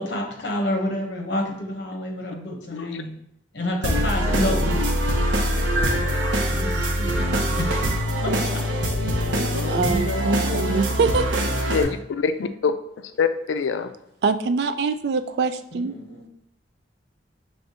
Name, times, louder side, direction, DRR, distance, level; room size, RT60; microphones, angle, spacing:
voice 1, 0.0-3.1 3.5-4.8 6.4-8.9 15.7-16.3, left 1 dB, 70° left, 1 dB, 1.0 m, -29 dB
voice 2, 2.7-3.0 5.8-6.5 9.5-11.0 11.7-13.9, left 5 dB, 90° left, 10 dB, 0.4 m, -27 dB
sound 1, 3.8-11.8, equal, 85° right, 0.7 m, -23 dB
voice 3, 9.7-11.3 14.2-16.0, right 4 dB, 60° right, 11 dB, 0.3 m, -24 dB
5.4 x 3.4 x 2.8 m, 0.75 s
head